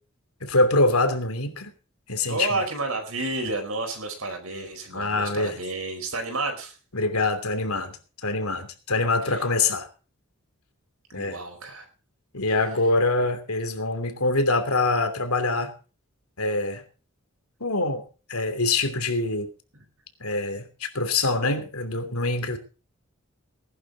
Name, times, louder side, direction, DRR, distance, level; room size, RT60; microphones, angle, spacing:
voice 1, 0.4-1.7 2.1-2.6 4.9-5.6 6.9-8.0 8.2-9.9 11.1-11.4 12.3-15.7 16.4-16.8 17.6-18.0 18.3-19.5 20.2-22.6, left 2 dB, 80° left, 8 dB, 2.9 m, -24 dB
voice 2, 2.3-6.8 9.2-9.5 11.1-11.9 19.7-19.8, right 2 dB, 75° right, 3 dB, 4.6 m, -31 dB
19.5 x 11.5 x 4.0 m, 0.35 s
head